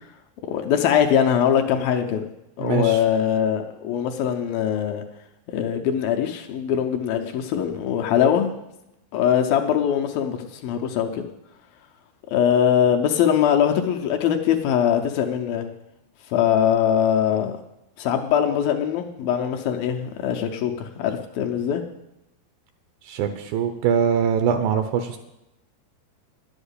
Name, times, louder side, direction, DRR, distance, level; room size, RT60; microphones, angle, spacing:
voice 1, 0.4-2.2 2.6-5.0 5.5-8.5 9.1-11.3 12.3-15.7 16.3-17.6 18.0-21.8, left 9 dB, 75° left, 4 dB, 2.4 m, -22 dB
voice 2, 2.6-3.0 23.1-25.2, right 7 dB, 75° right, 8 dB, 2.3 m, -22 dB
10.5 x 8.0 x 8.3 m, 0.89 s
omnidirectional pair, 4.6 m